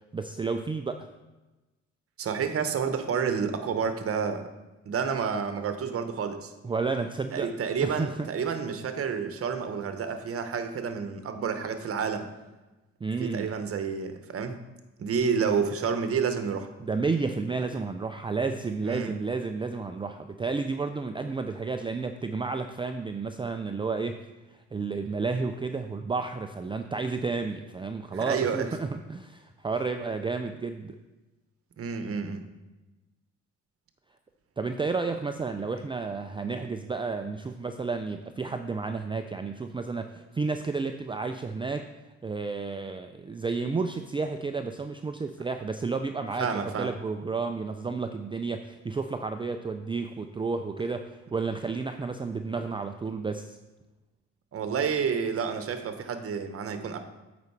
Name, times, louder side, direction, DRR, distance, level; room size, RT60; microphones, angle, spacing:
voice 1, 0.1-1.1 6.6-7.5 7.8-8.3 13.0-13.5 16.8-24.2 24.5-31.0 34.6-41.9 42.2-53.6, right 4 dB, 15° right, 7 dB, 0.4 m, -31 dB
voice 2, 2.2-4.5 4.9-6.5 7.3-12.2 13.2-14.6 15.0-16.7 18.8-19.1 28.1-28.7 31.8-32.4 46.4-46.9 54.5-57.0, right 6 dB, 50° right, 8 dB, 1.0 m, -29 dB
8.4 x 5.2 x 4.6 m, 1.1 s
cardioid pair, 90°, 30 cm